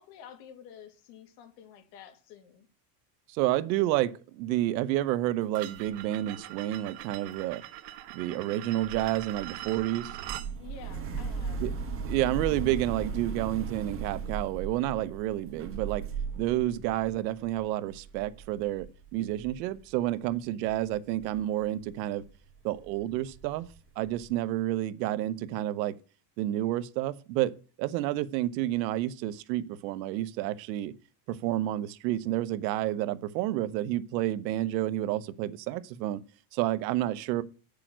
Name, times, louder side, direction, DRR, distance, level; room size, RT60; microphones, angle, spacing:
voice 1, 0.0-2.7 10.5-11.6, left 8 dB, 80° left, 2.7 m, -50 dB
voice 2, 3.3-7.6 8.1-10.2 11.6-11.7 12.0-16.1 16.4-22.2 22.6-23.7 24.0-26.0 26.4-30.9 31.3-36.2 36.5-37.4, right 14 dB, 85° right, 1.0 m, -30 dB
sound 1, 5.5-10.5, right 15 dB, 55° right, 1.1 m, -42 dB
sound 2, 8.8-20.4 20.7-24.4, right 5 dB, 25° right, 1.9 m, -38 dB
9.1 x 6.8 x 6.1 m
cardioid pair, 150°, 50 cm